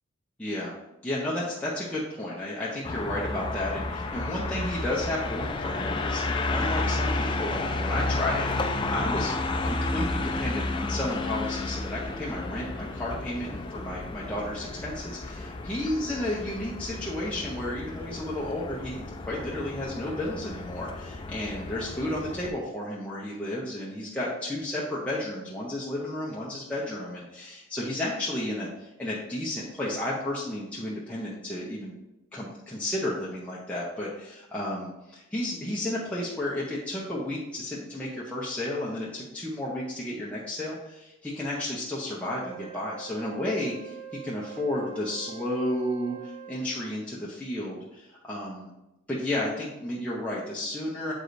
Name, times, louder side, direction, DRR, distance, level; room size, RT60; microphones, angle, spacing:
voice 1, 0.4-0.7 1.0-31.9 32.3-48.7 49.1-51.1, left 1 dB, 5° left, -7 dB, 0.7 m, -32 dB
sound 1, 2.8-22.5, left 2 dB, 25° left, 0.3 m, -32 dB
Wind instrument woodwind instrument, 42.4-46.7, right 9 dB, 45° right, 1.0 m, -44 dB
7.9 x 4.8 x 2.6 m, 0.97 s
head